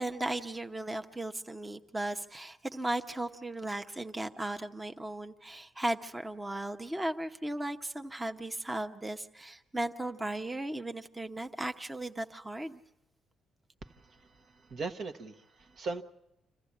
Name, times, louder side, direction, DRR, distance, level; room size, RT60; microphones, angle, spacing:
voice 1, 0.0-12.8, right 1 dB, 15° right, 6 dB, 0.9 m, -36 dB
voice 2, 13.8-16.0, right 3 dB, 60° right, 7 dB, 1.2 m, -40 dB
26.5 x 14.5 x 8.5 m, 0.88 s
cardioid pair, 90°, 0 cm